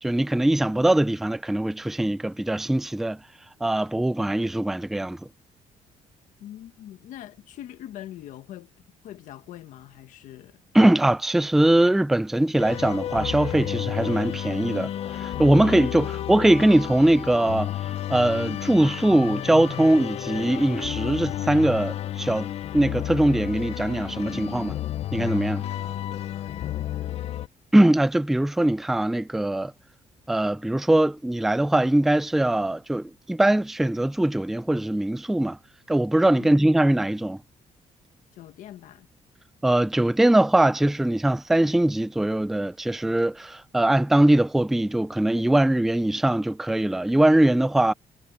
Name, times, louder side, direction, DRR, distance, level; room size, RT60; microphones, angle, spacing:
voice 1, 0.0-3.2 3.6-5.2 10.7-17.7 18.1-24.8 25.1-25.7 27.7-29.7 30.3-35.6 35.9-37.4 39.6-47.9, right 1 dB, ahead, 0.4 m, -21 dB
voice 2, 6.4-8.7 9.0-10.6 16.0-16.5 25.8-27.1 36.4-36.6 38.3-39.1, left 12 dB, 80° left, 1.4 m, -43 dB
sound 1, 12.6-27.5, left 12 dB, 55° left, 0.7 m, -31 dB
cardioid pair, 170°, 13 cm